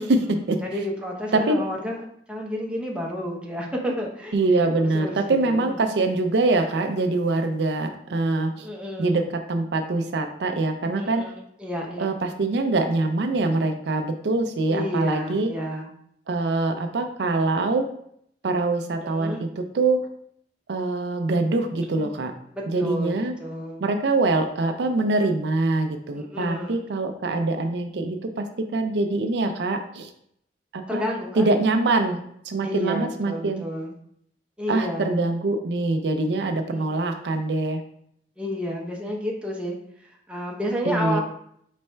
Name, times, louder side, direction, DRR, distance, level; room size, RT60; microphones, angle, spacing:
voice 1, 0.0-0.6 1.5-1.6 4.3-8.7 9.0-9.2 9.5-11.2 12.0-15.5 16.3-17.8 18.4-20.0 20.7-22.3 22.7-23.3 23.8-28.4 28.7-30.1 30.7-31.0 31.3-32.2 32.5-33.6 34.7-37.8 40.9-41.2, right 2 dB, 70° right, 6 dB, 0.5 m, -24 dB
voice 2, 0.6-5.2 5.4-5.8 6.7-6.8 8.6-9.2 11.0-12.1 14.7-15.9 19.0-19.4 21.9-22.2 22.5-23.8 26.1-26.9 30.9-31.7 32.6-33.9 34.6-35.2 36.7-37.3 38.4-39.8 40.3-41.2, equal, 5° right, -2 dB, 0.7 m, -31 dB
4.4 x 3.3 x 3.2 m, 0.69 s
head